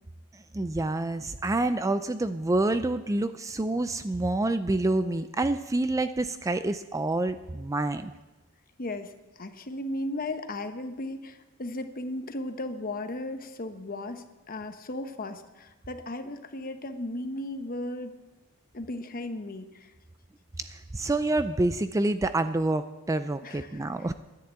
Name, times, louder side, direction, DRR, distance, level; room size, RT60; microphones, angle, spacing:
voice 1, 0.3-8.1 20.6-24.1, right 2 dB, 15° right, 11 dB, 0.4 m, -27 dB
voice 2, 8.8-18.1 18.7-19.9 23.4-24.1, left 1 dB, 40° left, 8 dB, 1.0 m, -36 dB
10.5 x 10.5 x 8.7 m, 1.1 s
head